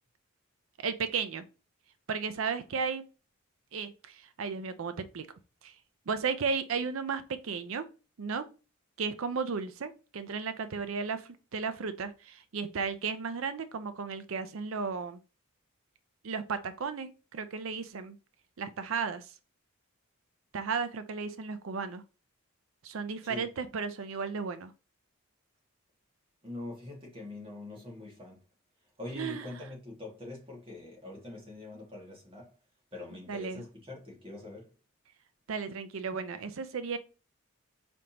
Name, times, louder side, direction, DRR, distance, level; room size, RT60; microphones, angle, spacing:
voice 1, 0.8-1.4 2.1-3.0 3.7-5.3 5.6-5.7 6.1-7.8 8.2-8.4 9.0-15.2 16.2-18.2 18.6-19.3 20.5-22.0 22.8-24.7 29.2-29.5 33.3-33.6 35.5-37.0, right 5 dB, 65° right, 0.5 m, -34 dB
voice 2, 26.4-28.4 29.0-32.5 32.9-34.7, left 2 dB, 25° right, 2.0 m, -44 dB
5.1 x 3.5 x 2.9 m
head